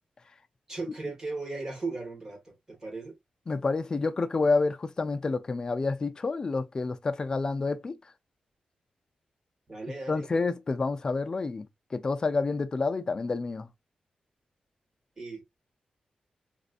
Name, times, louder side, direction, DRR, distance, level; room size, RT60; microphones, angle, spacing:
voice 1, 0.7-3.2 9.7-10.3 15.2-15.4, right 3 dB, 25° right, 1.6 m, -37 dB
voice 2, 3.5-8.0 10.1-11.7 11.9-13.7, left 3 dB, 30° left, 0.4 m, -28 dB
4.2 x 2.5 x 2.4 m
wide cardioid pair, 165°, 3 cm